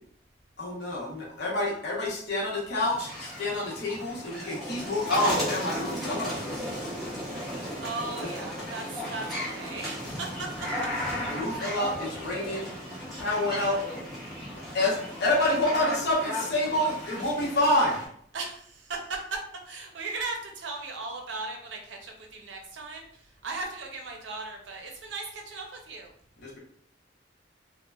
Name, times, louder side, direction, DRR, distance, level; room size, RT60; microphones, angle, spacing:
voice 1, 0.6-6.7 8.2-8.3 11.3-12.7 13.2-13.8 14.5-18.0 26.4-26.6, left 1 dB, 65° left, -3 dB, 0.8 m, -28 dB
sound 1, 2.8-18.1, equal, ahead, 1.0 m, -35 dB
voice 2, 7.8-10.7 18.3-26.1, right 3 dB, 80° right, 2 dB, 0.6 m, -37 dB
3.0 x 2.1 x 2.3 m, 0.64 s
head